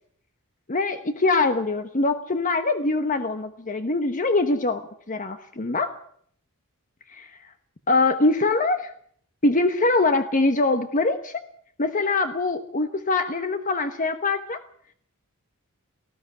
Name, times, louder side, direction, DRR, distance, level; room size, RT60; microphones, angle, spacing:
voice 1, 0.7-5.9 7.1-7.3 7.9-8.9 9.4-11.4 11.8-14.6, left 3 dB, 35° left, 8 dB, 1.1 m, -23 dB
19.0 x 14.5 x 9.5 m, 0.64 s
head